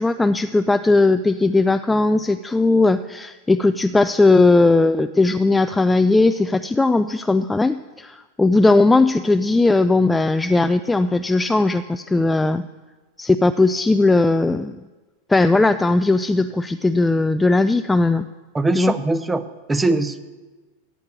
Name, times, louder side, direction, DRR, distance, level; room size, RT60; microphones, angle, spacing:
voice 1, 0.0-12.6 13.2-14.8 15.3-18.3 18.7-18.9, left 2 dB, 10° left, 11 dB, 0.3 m, -18 dB
voice 2, 18.5-20.2, right 2 dB, 10° right, 12 dB, 0.7 m, -21 dB
15.0 x 9.2 x 6.8 m, 1.3 s
figure-of-eight pair, 90°, 0 cm